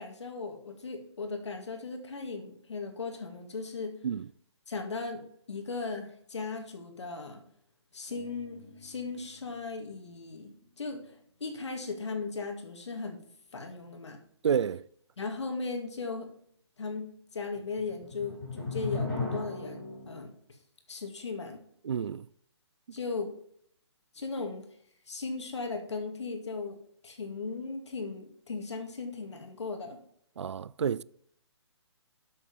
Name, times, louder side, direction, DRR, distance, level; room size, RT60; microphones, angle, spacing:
voice 1, 0.0-4.0 4.7-7.4 7.9-10.5 10.8-13.2 13.5-14.2 15.2-16.3 16.8-20.3 20.9-21.6 22.9-23.3 24.1-24.6 25.1-26.8 27.0-30.0, left 4 dB, 70° left, 2.2 m, -37 dB
sound 1, 8.1-9.8 10.1-10.2 17.5-20.2, left 3 dB, 10° left, 3.2 m, -37 dB
voice 2, 14.4-14.8 21.8-22.3 22.9-23.0 30.4-31.0, right 7 dB, 75° right, 0.4 m, -29 dB
8.2 x 7.1 x 5.4 m
hypercardioid pair, 175°, 15 cm